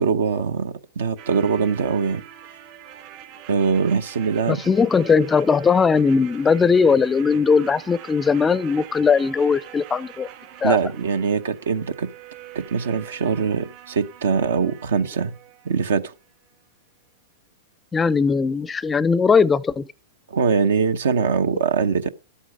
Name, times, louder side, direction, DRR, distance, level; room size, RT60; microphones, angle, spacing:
voice 1, 0.0-2.2 3.5-4.6 10.6-12.1 12.5-15.4 15.6-16.1 20.3-22.1, right 6 dB, 80° right, 0.9 m, -22 dB
sound 1, 1.2-16.2 16.5-16.6, right 11 dB, 50° right, 3.1 m, -44 dB
voice 2, 4.5-10.3 10.6-10.8 17.9-19.9, left 5 dB, 15° left, 0.4 m, -19 dB
11.5 x 8.4 x 5.2 m
hypercardioid pair, 115°, 0 cm